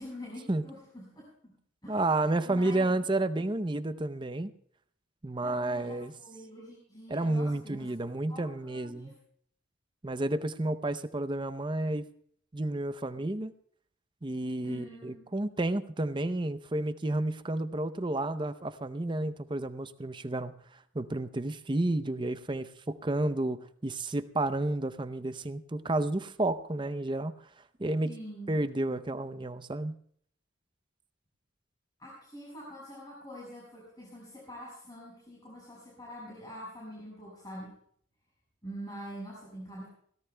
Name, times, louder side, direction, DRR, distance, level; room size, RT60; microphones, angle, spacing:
voice 1, 0.0-1.6 1.8-3.1 5.4-9.1 14.6-15.2 28.0-28.5 32.0-37.8 38.6-39.9, equal, 20° left, -5 dB, 5.5 m, -45 dB
voice 2, 1.9-4.5 5.2-6.1 7.1-9.1 10.0-12.1 12.5-13.5 14.2-20.5 20.9-27.3 27.8-28.1 28.5-29.9, right 2 dB, 25° right, 12 dB, 0.6 m, -31 dB
23.5 x 17.5 x 2.2 m, 0.63 s
head